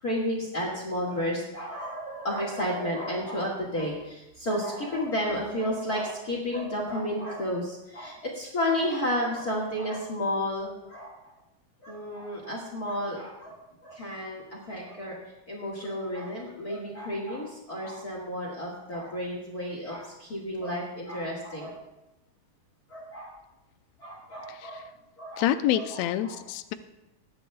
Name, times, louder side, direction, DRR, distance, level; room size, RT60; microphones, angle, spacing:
voice 1, 0.0-11.1 11.8-15.1 15.5-21.7 22.9-23.3 24.0-24.8 25.2-25.5 25.7-26.4, equal, 35° left, -3 dB, 1.8 m, -32 dB
voice 2, 24.5-24.8 25.4-26.7, left 12 dB, 80° left, 9 dB, 1.6 m, -27 dB
21.5 x 10.0 x 2.3 m, 0.93 s
omnidirectional pair, 3.7 m